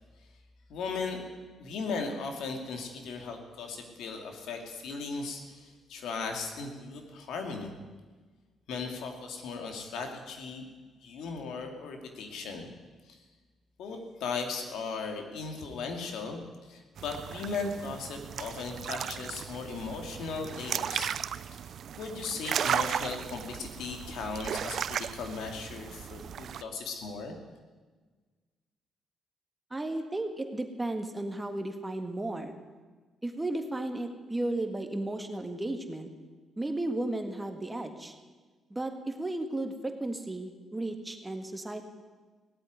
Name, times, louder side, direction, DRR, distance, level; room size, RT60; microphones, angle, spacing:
voice 1, 0.7-1.2 1.6-7.7 8.7-10.6 11.0-12.7 13.1-13.2 13.8-21.1 21.5-21.6 22.0-27.4, left 4 dB, 80° left, 4 dB, 2.5 m, -37 dB
sound 1, 17.0-26.6, right 8 dB, 60° right, 0.5 m, -36 dB
voice 2, 29.7-32.6 33.2-36.1 36.6-38.1 38.7-41.8, right 2 dB, 15° right, 6 dB, 1.7 m, -34 dB
17.5 x 8.1 x 9.5 m, 1.4 s
cardioid pair, 90°, 0 cm